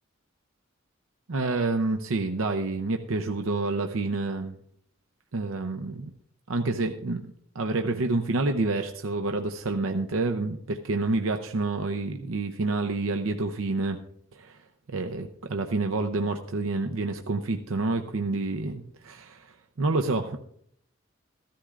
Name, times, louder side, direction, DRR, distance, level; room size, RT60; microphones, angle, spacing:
voice 1, 1.3-4.6 5.3-6.1 6.5-14.0 14.3-14.6 14.9-20.4, right 3 dB, 85° right, 6 dB, 0.7 m, -28 dB
14.5 x 13.0 x 2.5 m, 0.69 s
head